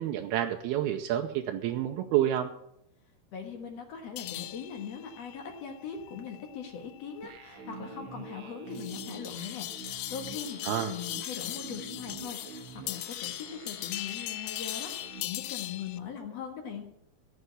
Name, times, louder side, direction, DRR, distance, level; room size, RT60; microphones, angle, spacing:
voice 1, 0.0-2.5 10.6-10.9, right 11 dB, 80° right, 4 dB, 2.5 m, -29 dB
voice 2, 3.3-16.8, left 7 dB, 60° left, 5 dB, 1.9 m, -41 dB
sound 1, 4.2-16.0, left 16 dB, 80° left, 2.5 m, -40 dB
sound 2, 7.2-15.2, right 4 dB, 65° right, 1.8 m, -46 dB
14.5 x 6.7 x 9.6 m, 0.74 s
omnidirectional pair, 4.7 m